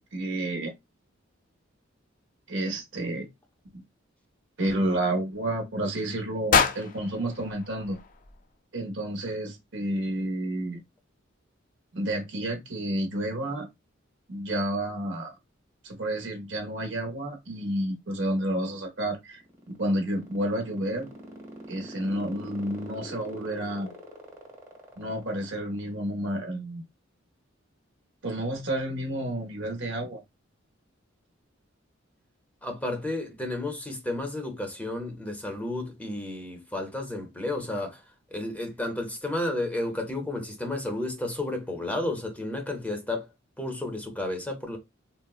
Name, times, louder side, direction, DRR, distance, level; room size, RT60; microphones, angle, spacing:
voice 1, 0.1-0.7 2.5-3.3 4.6-8.0 8.7-10.8 11.9-13.7 14.3-15.3 15.8-19.4 19.8-21.1 21.7-24.0 25.0-26.8 28.2-30.2, right 1 dB, 65° right, 0.8 m, -30 dB
sound 1, 6.5-8.6, left 6 dB, 45° left, 0.4 m, -27 dB
sound 2, 19.3-25.9, right 1 dB, 15° right, 1.0 m, -44 dB
voice 2, 32.6-38.0 38.3-43.3 43.6-44.8, left 2 dB, 10° left, 0.7 m, -32 dB
3.7 x 2.1 x 2.3 m
head